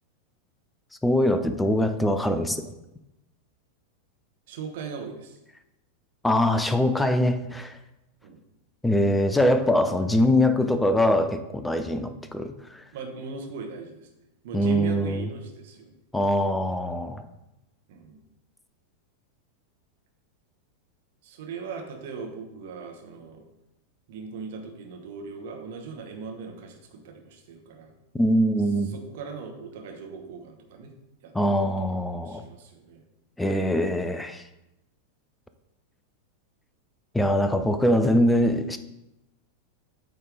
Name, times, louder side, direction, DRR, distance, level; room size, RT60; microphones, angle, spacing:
voice 1, 1.0-2.6 6.2-7.8 8.8-12.8 14.5-15.3 16.1-17.2 28.1-28.9 31.3-32.4 33.4-34.4 37.1-38.8, left 1 dB, 5° left, 9 dB, 0.5 m, -23 dB
voice 2, 4.5-5.4 8.2-8.4 11.8-12.0 12.9-14.1 14.4-15.9 17.9-18.2 21.2-23.4 24.1-27.9 28.9-30.9 31.2-33.0, right 5 dB, 55° right, 3 dB, 1.0 m, -39 dB
8.5 x 3.3 x 3.8 m, 0.93 s
figure-of-eight pair, 90°, 0 cm